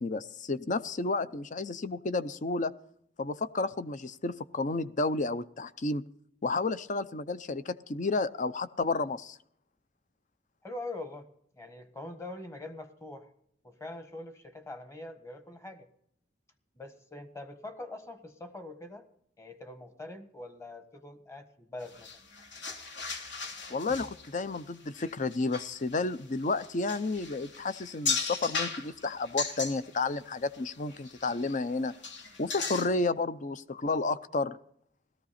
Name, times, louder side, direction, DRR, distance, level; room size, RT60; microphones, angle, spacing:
voice 1, 0.0-2.7 3.2-6.0 6.4-9.4 23.7-31.9 32.4-34.6, left 3 dB, 45° left, 15 dB, 0.6 m, -31 dB
voice 2, 10.6-11.3 11.6-13.3 13.6-15.9 16.7-19.1 19.4-22.1, left 2 dB, 15° left, 8 dB, 1.4 m, -43 dB
sound 1, 21.8-30.2 30.5-31.6 31.9-32.9, left 4 dB, 80° left, 3.2 m, -37 dB
17.5 x 14.0 x 4.2 m, 0.68 s
head